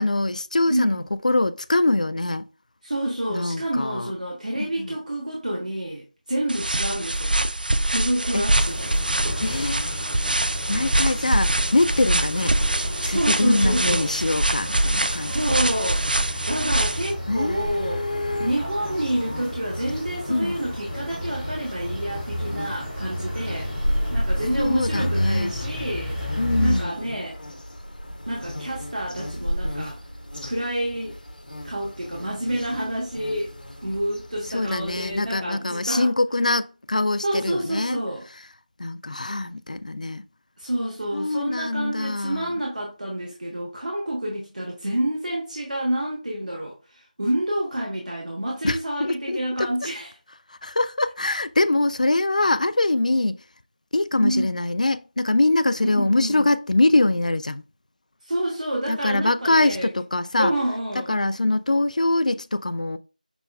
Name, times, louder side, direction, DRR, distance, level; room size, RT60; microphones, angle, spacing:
voice 1, 0.0-2.5 3.3-4.1 4.5-4.9 8.3-8.4 9.4-9.9 10.7-12.5 13.0-15.6 17.3-18.5 20.3-20.5 24.6-25.5 26.4-26.9 34.5-38.0 38.8-40.2 41.1-42.5 48.6-49.7 50.6-53.4 53.9-57.6 58.9-60.5 61.0-63.0, left 2 dB, 55° left, 0.3 m, -23 dB
voice 2, 0.7-1.1 2.8-7.4 7.8-9.0 13.1-14.1 15.3-16.1 16.5-18.0 18.4-23.7 24.1-26.2 26.6-27.4 28.3-30.0 30.4-31.2 31.6-33.5 33.8-36.1 37.2-38.3 40.6-50.1 54.2-54.5 55.9-56.5 58.2-59.9 60.4-61.1, right 1 dB, 60° right, 1.1 m, -28 dB
sound 1, 6.5-17.1, right 1 dB, 85° right, 0.4 m, -24 dB
sound 2, 8.6-26.8, equal, ahead, 0.6 m, -32 dB
sound 3, 17.5-35.3, equal, 85° left, 1.0 m, -34 dB
5.9 x 2.2 x 2.3 m
figure-of-eight pair, 175°, 5 cm